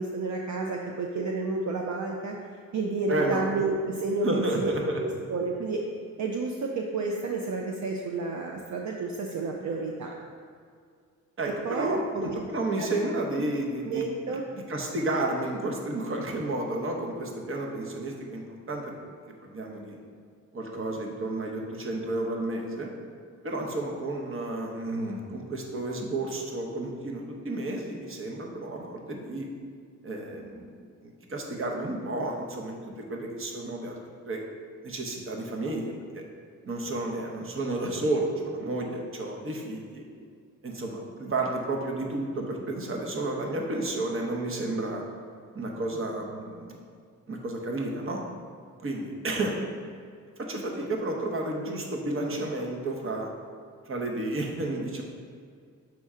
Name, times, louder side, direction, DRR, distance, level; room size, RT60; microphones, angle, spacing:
voice 1, 0.0-2.4 2.7-4.7 5.0-5.8 6.2-10.1 11.6-12.3 12.8-12.9 13.8-14.4, right 3 dB, 60° right, 0 dB, 0.6 m, -30 dB
voice 2, 3.1-3.4 4.2-5.0 11.4-19.0 19.4-20.0 20.5-22.9 23.4-29.5 30.0-32.8 33.1-34.0 34.2-34.4 34.8-35.9 36.1-36.2 36.6-40.0 40.6-45.0 45.5-46.8 47.3-48.2 48.8-49.6 50.4-53.3 53.9-55.0, right 2 dB, 40° right, 1 dB, 1.0 m, -31 dB
6.2 x 4.2 x 3.6 m, 2.1 s
cardioid pair, 90°, 32 cm